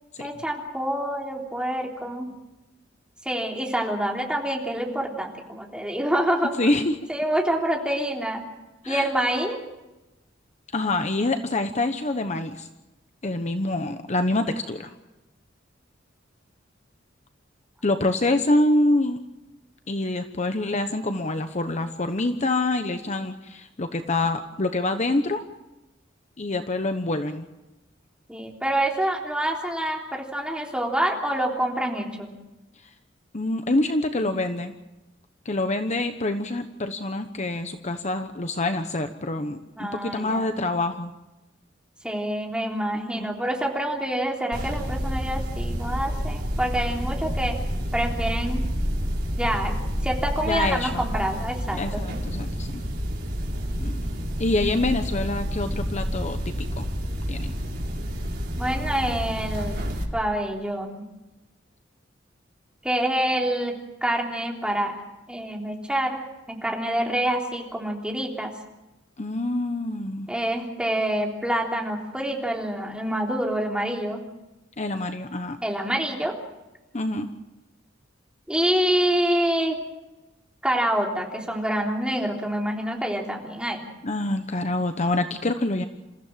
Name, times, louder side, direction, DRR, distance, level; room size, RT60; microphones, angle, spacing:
voice 1, 0.2-2.3 3.2-6.5 7.1-8.4 8.9-9.6 28.3-32.3 34.2-34.3 39.8-40.5 42.0-47.6 47.9-48.7 49.4-49.8 50.0-52.0 58.6-59.8 60.1-61.0 62.8-65.0 65.3-66.2 66.5-68.5 70.3-74.2 75.6-76.3 78.5-79.8 80.6-83.8, right 1 dB, 5° right, -1 dB, 3.5 m, -26 dB
voice 2, 6.6-7.0 8.8-9.1 10.7-12.7 13.2-14.9 17.8-19.2 19.9-25.4 26.4-27.5 33.3-34.7 35.4-41.1 42.9-43.3 50.4-51.1 51.7-52.8 53.8-53.9 54.4-56.9 57.3-57.5 69.2-70.3 74.8-75.6 76.9-77.3 84.0-85.8, left 2 dB, 40° left, 8 dB, 1.1 m, -26 dB
sound 1, 44.5-60.0, equal, 55° right, 4.0 m, -29 dB
28.0 x 15.0 x 7.5 m, 1.0 s
head